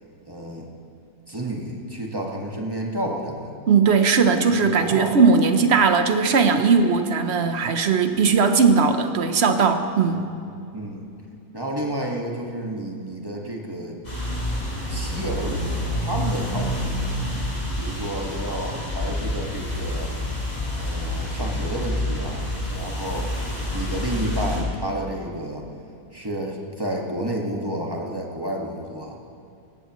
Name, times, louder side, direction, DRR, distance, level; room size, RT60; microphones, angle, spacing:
voice 1, 0.3-0.7 1.3-3.5 4.6-5.1 10.1-10.2 10.7-11.1 11.5-14.0 14.9-15.7 16.0-16.9 17.8-20.1 20.7-22.4 22.7-23.4 23.7-25.6 26.1-29.2, right 1 dB, 15° right, -1 dB, 1.5 m, -30 dB
voice 2, 3.7-10.2, right 5 dB, 55° right, 8 dB, 0.9 m, -18 dB
sound 1, 14.0-24.6, left 1 dB, 25° left, 3.4 m, -28 dB
18.5 x 14.5 x 3.0 m, 2.5 s
omnidirectional pair, 1.5 m